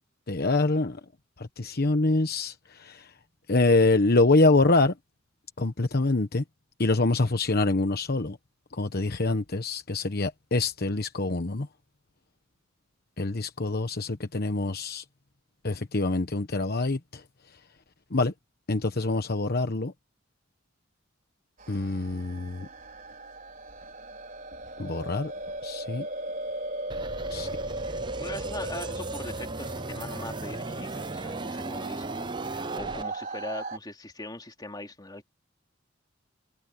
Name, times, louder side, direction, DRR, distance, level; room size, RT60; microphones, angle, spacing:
voice 1, 0.3-1.0 1.4-3.1 3.5-4.9 5.6-6.4 6.8-8.4 8.7-11.7 13.2-15.0 15.6-17.2 18.1-18.3 18.7-19.9 21.7-22.7 24.8-25.3 25.6-26.1 27.3-27.5, left 2 dB, 55° left, 1.1 m, -25 dB
sound 1, 21.6-33.8, right 2 dB, 45° right, 5.4 m, -37 dB
sound 2, 26.9-33.0, right 2 dB, 25° right, 0.6 m, -38 dB
voice 2, 27.9-35.3, left 2 dB, 20° left, 3.0 m, -41 dB
head